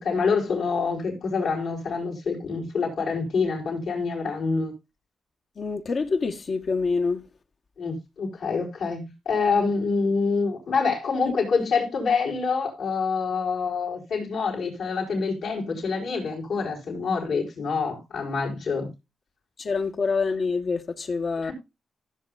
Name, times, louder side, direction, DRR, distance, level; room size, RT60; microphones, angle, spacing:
voice 1, 0.0-4.7 7.8-18.9 21.4-21.5, left 4 dB, 80° left, 4.8 m, -26 dB
voice 2, 5.6-7.2 19.6-21.5, left 4 dB, 55° left, 1.3 m, -26 dB
15.5 x 7.4 x 2.5 m
cardioid pair, 65°, 0 cm